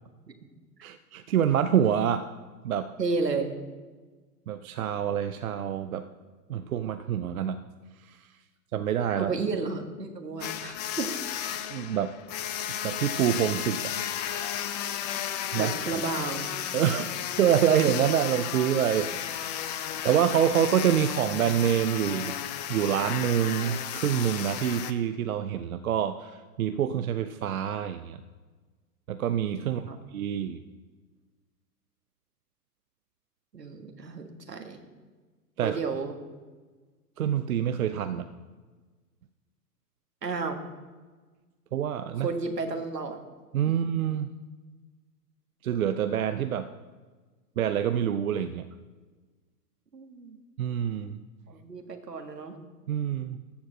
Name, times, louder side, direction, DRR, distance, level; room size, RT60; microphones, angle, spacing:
voice 1, 0.8-2.3 2.6-2.9 4.5-6.1 6.5-7.7 8.0-8.3 8.7-9.3 11.5-12.1 12.7-14.3 14.6-15.0 15.5-15.7 16.7-17.0 17.4-19.8 20.0-22.4 22.7-28.2 29.1-30.6 35.6-35.8 37.2-38.3 41.7-42.3 43.5-44.3 45.6-46.7 47.6-48.7 50.6-51.2 52.9-53.4, right 9 dB, 60° right, 10 dB, 0.6 m, -27 dB
voice 2, 3.0-3.5 9.1-11.1 15.6-16.5 29.7-30.0 33.5-34.8 35.6-36.1 40.2-40.6 42.2-43.2 49.9-50.4 51.5-52.6, right 4 dB, 80° right, 4 dB, 1.7 m, -32 dB
sound 1, 10.4-24.9, left 10 dB, 25° left, 0.6 m, -34 dB
14.0 x 4.7 x 7.5 m, 1.3 s
figure-of-eight pair, 105°, 48 cm